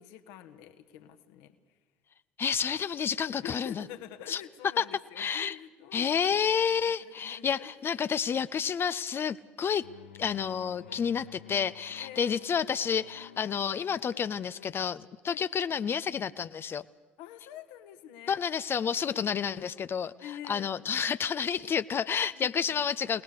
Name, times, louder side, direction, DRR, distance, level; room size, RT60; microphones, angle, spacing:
voice 1, 0.0-1.6 3.4-7.7 12.0-12.4 15.3-15.5 17.2-18.4 19.1-19.7 20.2-20.7 22.3-22.9, left 10 dB, 70° left, 9 dB, 1.6 m, -47 dB
voice 2, 2.4-3.9 4.3-4.4 4.8-4.9 5.2-5.6 5.9-9.8 10.2-16.8 18.3-23.2, left 7 dB, 40° left, 13 dB, 0.7 m, -30 dB
sound 1, 9.8-14.8, left 9 dB, 85° left, 0.8 m, -51 dB
28.0 x 19.0 x 6.7 m, 1.4 s
figure-of-eight pair, 60°, 6 cm